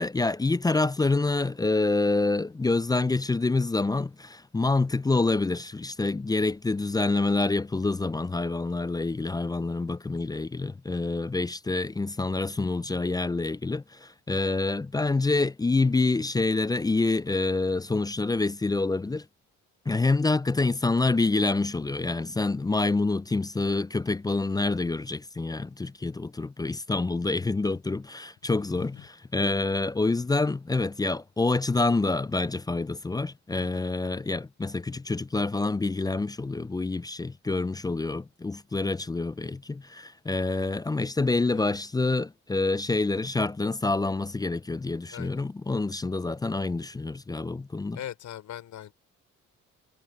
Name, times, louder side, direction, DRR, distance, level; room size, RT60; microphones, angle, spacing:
voice 1, 0.0-19.3 19.9-48.0, left 3 dB, 15° left, 0.4 m, -27 dB
voice 2, 28.5-29.1 33.6-33.8 41.5-41.7 45.1-45.4 47.9-48.9, left 11 dB, 75° left, 5.0 m, -41 dB
cardioid pair, 90°, 30 cm